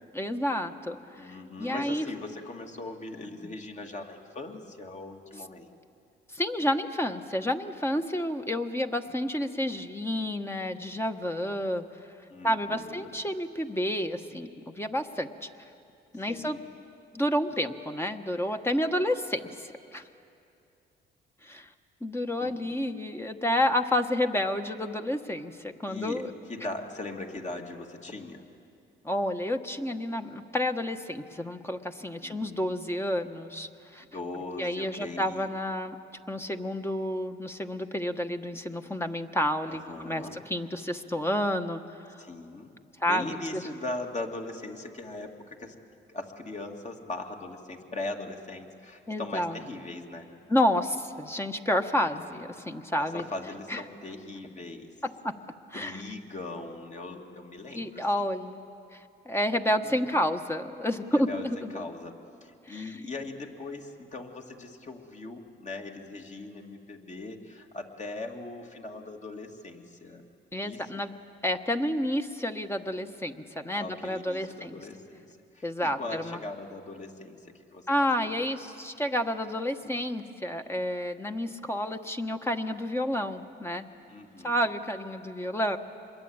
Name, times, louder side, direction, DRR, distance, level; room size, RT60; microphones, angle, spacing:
voice 1, 0.1-1.0 1.2-2.0 3.4-3.5 6.3-11.8 12.4-15.5 16.1-16.6 17.1-20.0 21.4-21.7 22.0-26.3 29.0-34.0 34.6-36.0 36.3-41.8 42.1-42.2 43.0-43.6 49.1-49.6 50.5-53.2 53.7-53.8 55.0-55.3 55.7-56.0 57.7-58.6 58.9-61.8 62.7-63.0 70.5-71.1 71.4-74.8 75.6-76.4 77.9-83.9 84.4-85.8, left 1 dB, 10° left, 6 dB, 1.2 m, -30 dB
voice 2, 1.2-5.7 12.3-13.1 16.3-16.6 22.4-22.9 25.9-26.2 26.5-28.4 32.2-32.7 34.0-35.5 39.7-40.4 42.2-45.7 46.1-50.3 52.0-52.5 53.0-54.9 55.7-58.0 59.8-60.0 61.1-70.2 70.6-71.0 73.7-75.3 75.5-77.9 78.2-78.3 84.1-84.6, left 2 dB, 35° left, 2 dB, 2.5 m, -40 dB
26.5 x 22.0 x 8.9 m, 2.6 s
cardioid pair, 90°, 20 cm